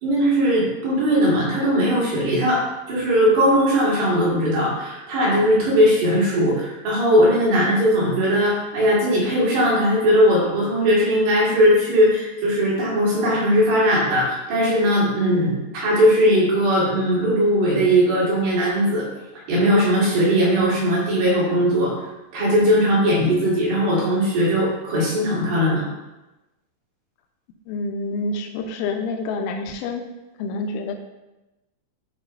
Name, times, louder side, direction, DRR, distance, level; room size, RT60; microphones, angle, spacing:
voice 1, 0.0-19.0 19.5-21.9 22.3-25.8, equal, 60° right, -6 dB, 3.5 m, -19 dB
voice 2, 27.7-30.0 30.4-30.9, left 3 dB, 80° left, 3 dB, 2.9 m, -27 dB
12.0 x 4.7 x 2.6 m, 1.0 s
omnidirectional pair, 5.9 m